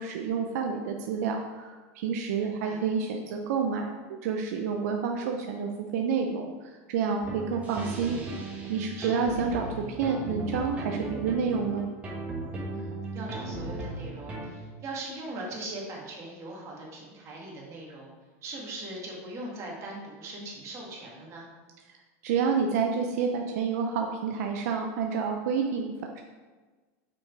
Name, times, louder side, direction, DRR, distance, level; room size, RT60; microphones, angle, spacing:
voice 1, 0.0-8.2 8.7-11.9 22.2-26.2, right 6 dB, 75° right, 3 dB, 0.6 m, -29 dB
voice 2, 2.4-2.8 8.9-9.4 12.7-18.1 18.4-21.5, right 2 dB, 35° right, -2 dB, 2.0 m, -40 dB
sound 1, 7.2-14.5, right 2 dB, 15° right, 1.4 m, -36 dB
6.1 x 4.8 x 4.7 m, 1.3 s
supercardioid pair, 135°, 9 cm